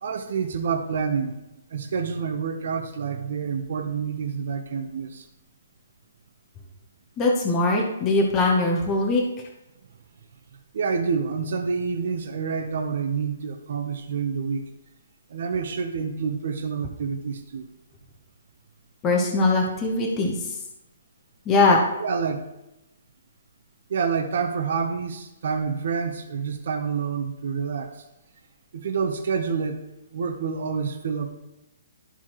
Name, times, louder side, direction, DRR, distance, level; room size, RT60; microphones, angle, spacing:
voice 1, 0.0-1.4 1.7-5.2 10.7-14.7 15.3-17.7 22.0-22.5 23.9-28.0 28.7-29.8 30.1-31.3, right 5 dB, 45° right, 4 dB, 0.7 m, -28 dB
voice 2, 7.2-9.2 19.0-20.4 21.5-21.8, left 3 dB, 10° left, -1 dB, 0.8 m, -21 dB
12.5 x 4.7 x 2.9 m, 0.92 s
hypercardioid pair, 180°, 0 cm